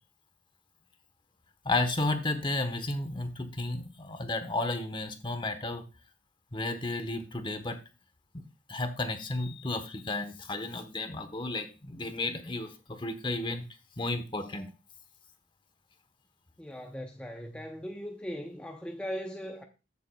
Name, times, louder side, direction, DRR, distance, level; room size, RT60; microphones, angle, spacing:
voice 1, 1.6-5.8 6.5-7.8 8.7-13.6 14.0-14.7, left 2 dB, 25° left, 1.1 m, -33 dB
voice 2, 16.6-19.6, equal, 5° left, 0.6 m, -39 dB
14.5 x 6.7 x 2.3 m
head